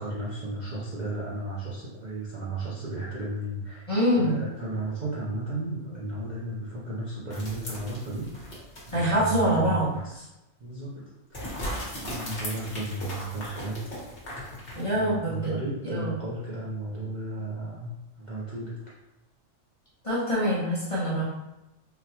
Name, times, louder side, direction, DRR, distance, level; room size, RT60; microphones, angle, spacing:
voice 1, 0.0-3.9 4.2-8.6 8.9-10.1 10.6-11.7 12.0-13.8 14.9-18.9, right 2 dB, 50° right, -8 dB, 0.5 m, -34 dB
voice 2, 3.9-4.4 8.9-10.2 14.8-16.1 20.0-21.2, equal, 30° left, -8 dB, 0.7 m, -25 dB
sound 1, 7.3-9.6 9.9-10.0 11.3-15.0, equal, 50° left, 1.2 m, -38 dB
3.7 x 2.2 x 2.8 m, 0.96 s
omnidirectional pair, 1.4 m